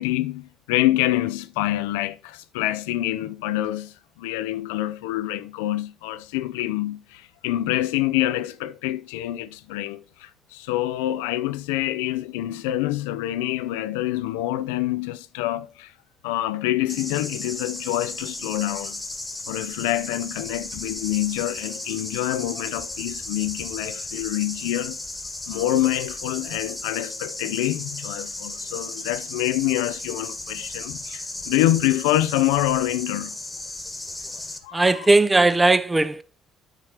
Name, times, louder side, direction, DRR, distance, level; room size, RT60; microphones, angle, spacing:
voice 1, 0.0-15.9 16.2-19.0 19.5-25.0 25.5-33.4 34.6-35.1, left 15 dB, 85° left, 0.5 m, -26 dB
sound 1, 16.9-34.6, left 2 dB, 15° left, 1.6 m, -35 dB
voice 2, 34.7-36.2, right 2 dB, 15° right, 0.7 m, -18 dB
9.0 x 4.3 x 4.9 m
supercardioid pair, 65°, 0 cm